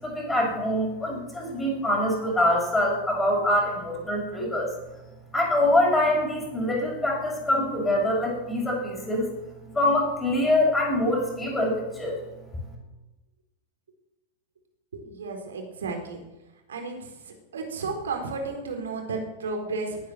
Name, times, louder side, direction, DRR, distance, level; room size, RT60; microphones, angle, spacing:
voice 1, 0.0-4.7 5.3-9.3 9.7-12.2, left 1 dB, 10° left, -3 dB, 7.0 m, -24 dB
voice 2, 14.9-16.2 16.7-17.1 17.5-20.0, right 4 dB, 65° right, 3 dB, 4.2 m, -33 dB
19.0 x 9.5 x 7.8 m, 1.0 s
figure-of-eight pair, 90°, 0 cm